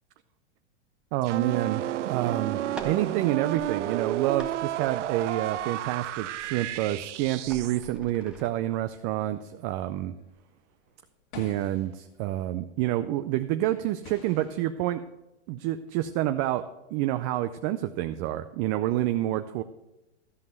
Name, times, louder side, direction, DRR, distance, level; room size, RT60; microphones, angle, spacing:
voice 1, 1.1-10.1 11.4-15.0 15.5-19.6, right 14 dB, 30° right, 10 dB, 0.4 m, -28 dB
sound 1, 1.2-7.9, right 13 dB, 85° right, 0.5 m, -32 dB
sound 2, 2.7-8.5, right 1 dB, ahead, 1.3 m, -47 dB
sound 3, 9.2-12.7 13.5-13.6 14.0-14.6, left 4 dB, 50° left, 1.8 m, -48 dB
13.0 x 5.4 x 7.8 m, 0.99 s
hypercardioid pair, 125°, 35 cm